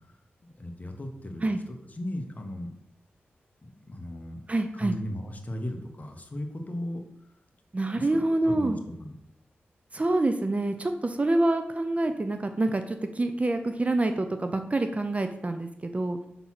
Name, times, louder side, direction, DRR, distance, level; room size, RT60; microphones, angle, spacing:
voice 1, 0.6-2.7 3.6-4.4 4.7-7.0 8.0-9.1, left 1 dB, 35° left, 4 dB, 1.2 m, -37 dB
voice 2, 4.5-5.0 7.7-8.8 9.9-16.2, right 2 dB, 30° right, 7 dB, 0.6 m, -26 dB
6.0 x 4.0 x 6.0 m, 0.79 s
cardioid pair, 60°, 4 cm